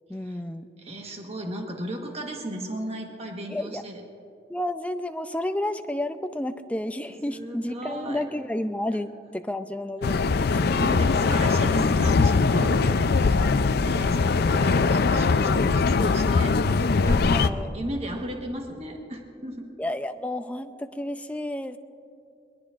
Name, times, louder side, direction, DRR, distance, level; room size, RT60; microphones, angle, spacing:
voice 1, 0.1-0.7 3.5-3.8 4.5-10.2 10.5-10.6 11.7-11.9 17.3-18.0 19.8-21.8, left 1 dB, 10° left, 9 dB, 0.5 m, -31 dB
voice 2, 0.8-4.0 7.2-8.3 10.5-17.4 17.7-19.7, right 1 dB, 35° right, 2 dB, 1.3 m, -35 dB
sound 1, 10.0-17.5, left 4 dB, 60° left, 0.5 m, -21 dB
22.0 x 21.0 x 2.5 m, 2.6 s
head